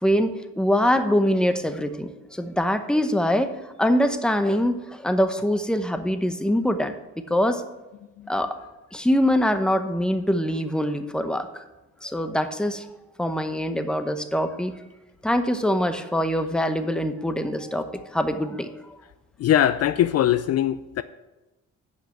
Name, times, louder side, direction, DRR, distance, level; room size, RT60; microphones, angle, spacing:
voice 1, 0.0-3.5 3.8-7.6 8.3-8.6 8.9-11.5 12.0-12.9 13.2-14.7 15.2-19.0, equal, 5° left, 0.8 m, -24 dB
voice 2, 19.4-21.0, left 11 dB, 55° left, 0.4 m, -21 dB
7.9 x 5.7 x 7.1 m
cardioid pair, 90°, 30 cm